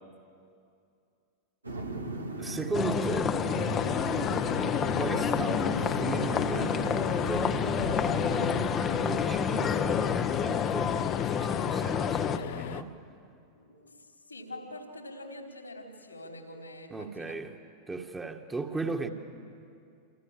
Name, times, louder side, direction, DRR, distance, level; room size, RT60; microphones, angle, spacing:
sound 1, 1.6-8.7, right 2 dB, 80° right, 2.2 m, -37 dB
voice 1, 2.4-3.4 5.0-7.7 8.7-12.9 16.9-17.5 17.9-19.1, right 3 dB, 15° right, 3 dB, 1.9 m, -36 dB
sound 2, 2.7-12.4, left 7 dB, 25° left, 1.2 m, -29 dB
sound 3, 3.5-12.8, left 12 dB, 55° left, 0.8 m, -37 dB
voice 2, 13.5-17.3, left 1 dB, 80° left, 3 dB, 4.2 m, -45 dB
28.5 x 27.0 x 7.6 m, 2.4 s
figure-of-eight pair, 90°, 0 cm